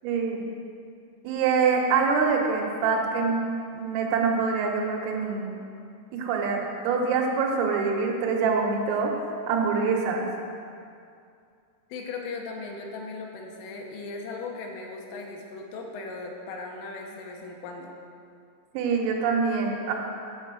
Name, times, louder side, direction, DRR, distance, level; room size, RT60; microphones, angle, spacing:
voice 1, 0.0-0.5 1.3-3.4 3.7-5.5 6.1-9.1 9.5-10.3 18.7-19.9, right 5 dB, 90° right, 0 dB, 3.7 m, -25 dB
voice 2, 11.9-17.9, left 3 dB, 80° left, 1 dB, 3.3 m, -38 dB
10.5 x 4.5 x 7.5 m, 2.4 s
omnidirectional pair, 5.8 m